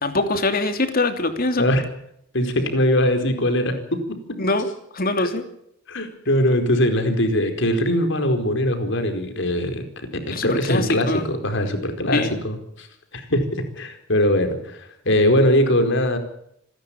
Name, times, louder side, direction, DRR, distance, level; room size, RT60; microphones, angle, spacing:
voice 1, 0.0-1.6 4.4-4.7 4.9-5.4 10.3-11.3 12.1-12.3, left 2 dB, 45° left, 8 dB, 3.0 m, -23 dB
voice 2, 2.3-4.0 5.2-5.3 5.9-9.8 10.4-12.9 13.1-13.4 13.8-16.2, left 1 dB, 65° left, 7 dB, 4.6 m, -21 dB
27.5 x 13.0 x 8.7 m, 0.74 s
head